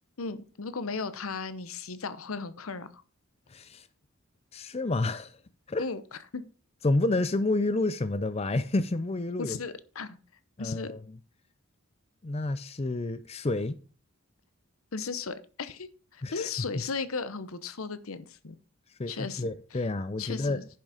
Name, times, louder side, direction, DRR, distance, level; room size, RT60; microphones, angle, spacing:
voice 1, 0.2-2.9 5.8-6.0 6.3-6.4 9.4-10.2 10.6-10.9 14.9-18.6 19.1-19.5 20.2-20.6, left 4 dB, 75° left, 0.9 m, -36 dB
voice 2, 3.5-3.9 4.5-5.4 5.7-5.8 6.8-9.6 10.6-11.2 12.2-13.7 16.2-16.5 19.0-20.7, left 2 dB, 30° left, 0.5 m, -29 dB
10.5 x 6.3 x 5.0 m
head